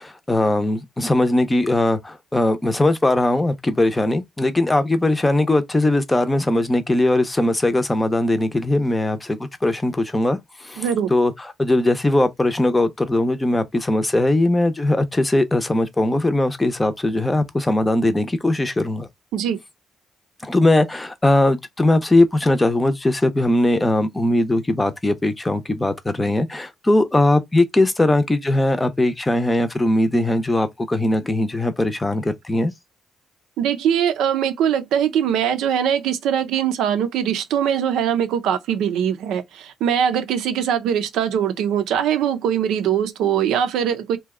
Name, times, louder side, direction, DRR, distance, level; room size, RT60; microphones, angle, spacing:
voice 1, 0.0-10.4 10.6-10.8 11.1-11.3 11.6-19.1 20.4-32.7, left 1 dB, 15° left, 0.6 m, -20 dB
voice 2, 10.8-11.1 19.3-19.6 33.6-44.2, right 9 dB, 85° right, 0.5 m, -21 dB
2.8 x 2.2 x 3.6 m
cardioid pair, 90°, 0 cm